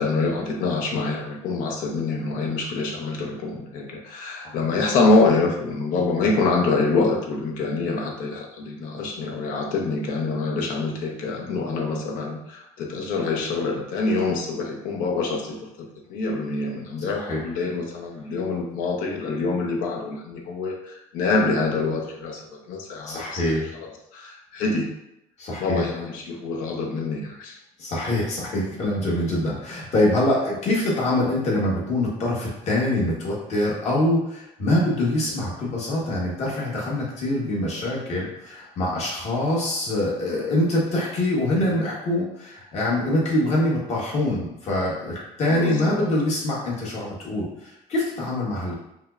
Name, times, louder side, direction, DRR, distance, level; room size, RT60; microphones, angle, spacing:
voice 1, 0.0-23.4 23.7-24.9 25.6-27.6 41.5-41.8 45.5-46.1, left 3 dB, 85° left, 2 dB, 0.7 m, -25 dB
voice 2, 23.1-23.6 25.4-25.9 27.8-48.7, left 1 dB, 55° left, -5 dB, 1.3 m, -24 dB
5.1 x 2.1 x 2.4 m, 0.83 s
cardioid pair, 110°, 14 cm